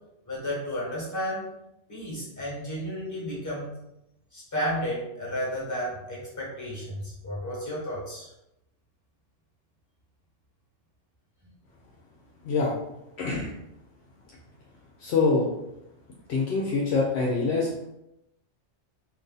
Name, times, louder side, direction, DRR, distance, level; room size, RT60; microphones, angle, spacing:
voice 1, 0.3-1.5 1.9-3.7 4.3-8.3, equal, 15° left, -6 dB, 1.2 m, -32 dB
voice 2, 13.2-13.5 15.0-15.5 16.3-17.9, left 4 dB, 70° left, -3 dB, 0.8 m, -25 dB
2.6 x 2.6 x 3.7 m, 0.87 s
omnidirectional pair, 1.2 m